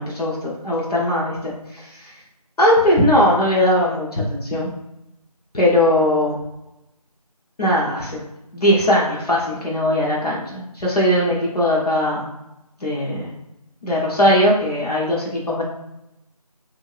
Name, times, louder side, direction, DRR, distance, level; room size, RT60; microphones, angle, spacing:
voice 1, 0.0-2.1 2.6-4.7 5.5-6.4 7.6-8.2 8.5-12.3 12.8-13.3 13.8-15.6, left 1 dB, 80° left, -5 dB, 0.9 m, -19 dB
2.6 x 2.6 x 3.1 m, 0.90 s
figure-of-eight pair, 180°, 20 cm